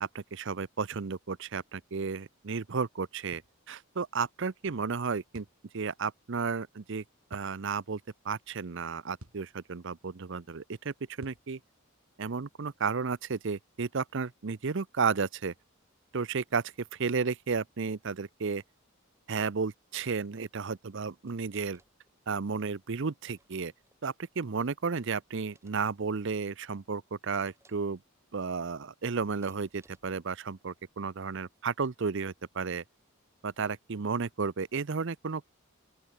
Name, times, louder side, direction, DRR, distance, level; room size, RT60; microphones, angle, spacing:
voice 1, 0.0-3.4 3.7-5.5 5.7-7.0 7.3-11.6 12.2-15.5 16.1-16.6 16.9-18.6 19.3-21.8 22.3-23.7 24.0-28.0 28.3-32.8 33.4-35.5, right 5 dB, 60° right, 0.6 m, -33 dB
sound 1, 3.3-3.6 5.3-5.6 7.3-7.5 9.2-9.5 11.2-11.5, right 1 dB, 80° right, 3.9 m, -50 dB
sound 2, 21.3-22.1 23.2-24.0 25.3-25.9 27.3-28.0 29.4-30.2, right 2 dB, 15° right, 2.5 m, -64 dB
open air
head